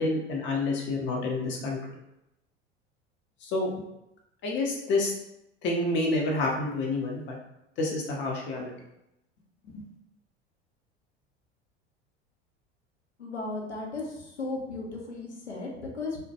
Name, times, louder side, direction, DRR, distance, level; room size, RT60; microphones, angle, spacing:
voice 1, 0.0-1.8 3.4-3.7 4.4-5.1 5.6-7.4 7.8-8.7 9.7-9.8, left 2 dB, 35° left, 0 dB, 0.6 m, -28 dB
voice 2, 13.2-16.2, left 3 dB, 85° left, -1 dB, 0.6 m, -35 dB
2.2 x 2.1 x 2.8 m, 0.85 s
figure-of-eight pair, 75°, 33 cm